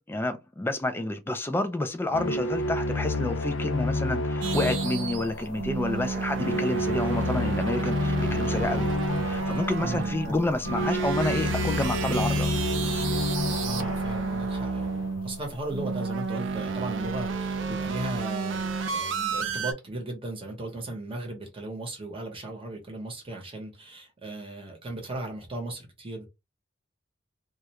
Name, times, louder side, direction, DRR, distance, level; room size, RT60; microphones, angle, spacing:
voice 1, 0.0-8.9 9.2-12.6, left 2 dB, 10° left, 0.3 m, -29 dB
sound 1, 2.1-15.2, left 2 dB, 85° left, 0.5 m, -30 dB
sound 2, 4.4-19.7, right 4 dB, 75° right, 0.4 m, -31 dB
sound 3, 8.1-14.6, equal, 45° left, 0.7 m, -44 dB
voice 2, 9.8-10.4 13.6-26.3, right 2 dB, 30° right, 0.8 m, -36 dB
2.3 x 2.2 x 2.8 m
head